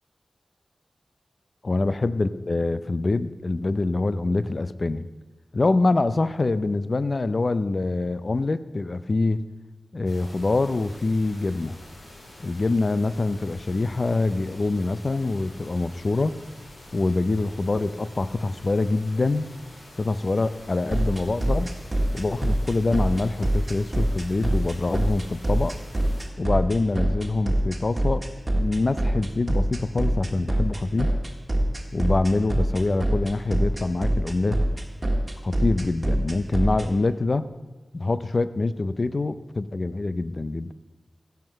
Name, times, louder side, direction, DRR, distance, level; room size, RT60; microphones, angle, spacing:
voice 1, 1.6-5.1 5.5-9.4 9.9-11.8 12.4-16.3 16.9-19.5 20.0-21.7 22.1-25.8 26.4-28.3 28.6-31.1 31.9-34.6 35.4-37.5 37.9-40.7, left 2 dB, 50° left, 14 dB, 0.5 m, -25 dB
sound 1, 10.0-26.2, left 1 dB, 75° left, 3.5 m, -46 dB
sound 2, 20.9-36.9, right 1 dB, 30° right, 1.5 m, -24 dB
15.5 x 5.9 x 6.4 m, 1.2 s
wide cardioid pair, 65°, 0 cm